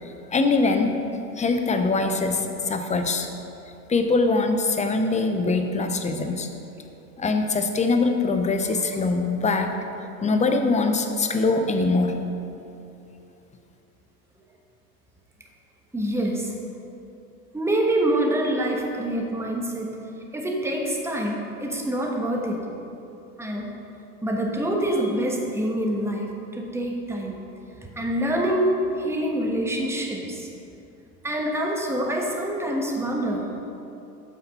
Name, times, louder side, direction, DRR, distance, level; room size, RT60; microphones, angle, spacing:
voice 1, 0.3-3.3 3.9-6.5 7.2-9.7 10.2-12.2, left 3 dB, 15° left, 6 dB, 0.7 m, -23 dB
voice 2, 15.9-16.5 17.5-19.9 20.3-22.6 23.4-23.7 24.2-27.4 28.0-28.7 29.0-30.5 31.2-33.7, right 1 dB, 5° right, 0 dB, 1.2 m, -26 dB
8.6 x 5.8 x 5.5 m, 2.8 s
hypercardioid pair, 85°, 49 cm